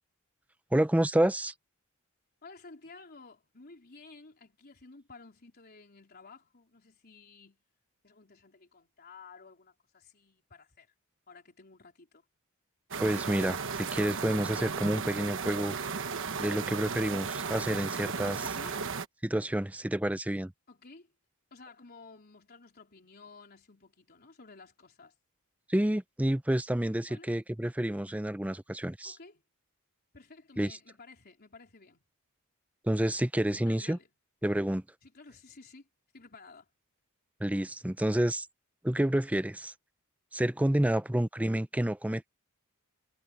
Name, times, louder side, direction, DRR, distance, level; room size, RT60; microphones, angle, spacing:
voice 1, 0.7-1.5 13.0-15.8 16.4-18.4 19.2-20.5 25.7-29.2 30.6-30.8 32.8-34.0 34.4-34.8 37.4-38.5 38.8-39.7 40.3-42.3, right 1 dB, 5° right, 0.6 m, -29 dB
voice 2, 2.4-7.6 8.0-10.9 11.3-12.2 18.4-18.8 20.7-21.1 21.5-25.2 27.1-27.3 29.0-29.4 30.1-32.0 33.7-34.1 35.0-35.9 36.1-36.7 40.9-41.0, left 3 dB, 45° left, 3.9 m, -53 dB
sound 1, 12.9-19.1, right 5 dB, 60° right, 1.2 m, -35 dB
head